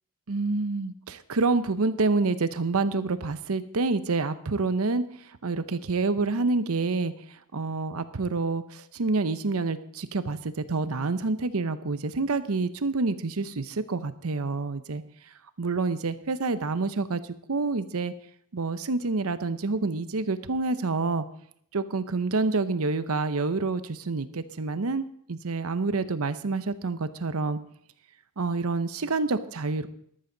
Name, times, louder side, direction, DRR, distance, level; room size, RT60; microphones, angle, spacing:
voice 1, 0.3-15.0 15.6-17.2 17.5-18.1 18.5-21.2 21.7-27.6 28.4-29.9, right 3 dB, 75° right, 13 dB, 0.8 m, -28 dB
13.0 x 12.5 x 3.9 m, 0.67 s
head